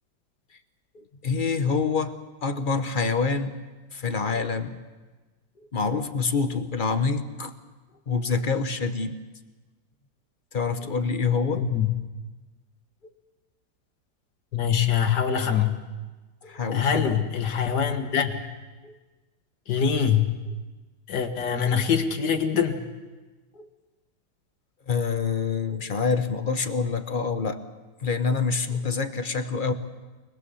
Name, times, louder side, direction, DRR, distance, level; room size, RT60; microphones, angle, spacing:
voice 1, 0.9-3.5 3.9-4.8 5.7-7.6 8.1-9.2 10.5-11.7 16.4-17.2 18.8-19.0 23.5-23.7 24.9-27.6 28.0-29.7, left 5 dB, 35° left, 9 dB, 0.9 m, -26 dB
voice 2, 11.6-11.9 14.5-15.8 16.7-18.4 19.7-20.3 21.1-22.8, left 7 dB, 65° left, 6 dB, 2.1 m, -24 dB
25.0 x 20.0 x 7.0 m, 1.2 s
omnidirectional pair, 2.0 m